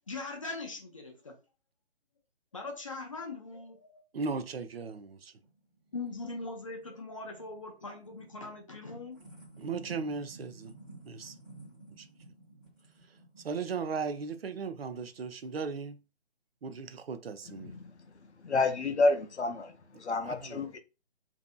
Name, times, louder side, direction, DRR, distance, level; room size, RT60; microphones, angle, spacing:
voice 1, 0.1-1.4 2.5-4.0 5.9-9.3, left 3 dB, 30° left, 0.5 m, -41 dB
voice 2, 4.1-5.3 9.6-10.7 11.1-11.3 12.0-12.1 13.4-16.0 16.6-17.8 20.2-20.6, right 5 dB, 65° right, 0.5 m, -37 dB
sound 1, 5.4-15.5, right 2 dB, ahead, 0.9 m, -54 dB
voice 3, 17.6-17.9 18.4-19.7 20.0-20.8, left 3 dB, 90° left, 0.6 m, -29 dB
2.7 x 2.5 x 2.3 m
figure-of-eight pair, 145°, 33 cm